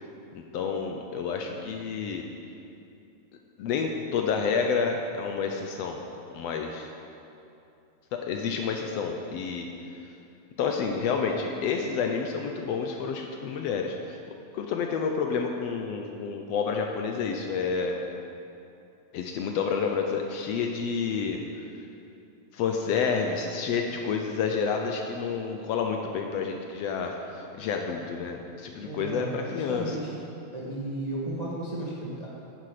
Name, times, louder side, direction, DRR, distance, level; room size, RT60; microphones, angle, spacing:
voice 1, 0.4-2.3 3.6-6.0 6.3-6.9 8.1-9.7 10.0-10.1 10.6-14.2 14.5-18.0 19.1-21.7 22.5-30.0, left 5 dB, 75° left, 3 dB, 1.6 m, -29 dB
voice 2, 28.8-30.1 30.5-32.3, right 2 dB, 50° right, -5 dB, 0.4 m, -34 dB
10.0 x 10.0 x 4.9 m, 2.7 s
omnidirectional pair, 3.3 m